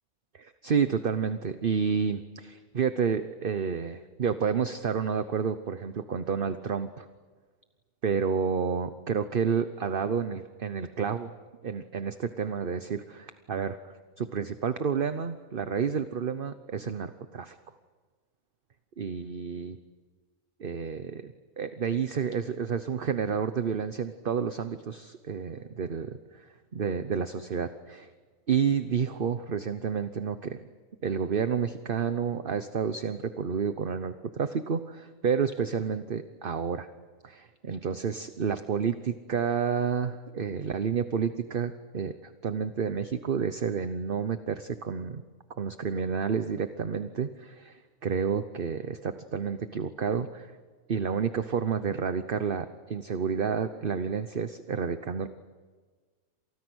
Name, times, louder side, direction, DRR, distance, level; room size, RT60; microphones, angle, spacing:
voice 1, 0.3-7.1 8.0-11.3 11.6-13.8 14.2-17.6 19.0-19.8 20.6-26.5 26.7-28.1 28.5-30.6 31.0-36.9 37.2-42.1 42.4-45.2 45.6-50.5 50.9-55.3, right 6 dB, 40° right, 10 dB, 1.0 m, -30 dB
29.5 x 27.5 x 6.3 m, 1.4 s
omnidirectional pair, 1.6 m